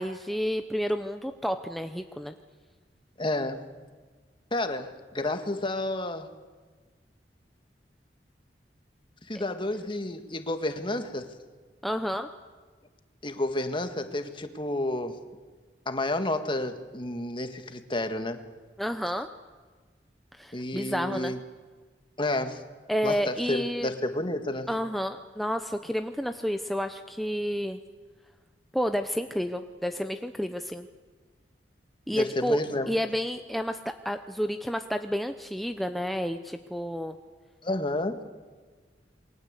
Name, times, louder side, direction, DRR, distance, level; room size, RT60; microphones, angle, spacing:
voice 1, 0.0-2.3 11.8-12.3 18.8-19.3 20.3-21.3 22.9-23.9 24.7-27.8 28.7-30.9 32.1-32.6 32.9-37.2, equal, ahead, 7 dB, 0.8 m, -30 dB
voice 2, 3.2-3.6 4.5-6.3 9.3-11.3 13.2-15.2 15.9-18.4 20.5-21.4 22.2-22.6 23.0-24.7 32.1-32.9 37.6-38.2, left 1 dB, 30° left, 8 dB, 1.9 m, -30 dB
28.0 x 22.5 x 8.3 m, 1.4 s
head